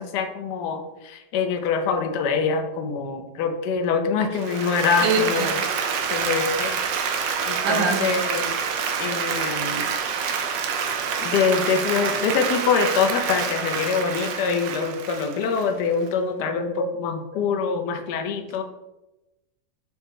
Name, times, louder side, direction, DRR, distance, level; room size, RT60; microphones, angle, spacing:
voice 1, 0.0-5.6 6.1-6.7 7.5-8.5 9.0-9.9 10.7-10.9 11.2-18.6, left 5 dB, 75° left, 5 dB, 1.1 m, -25 dB
Applause, 4.4-16.1, right 6 dB, 85° right, 1.3 m, -27 dB
voice 2, 5.0-5.5 7.6-8.0, right 3 dB, 65° right, 3 dB, 1.0 m, -22 dB
5.0 x 2.1 x 4.6 m, 1.0 s
omnidirectional pair, 1.9 m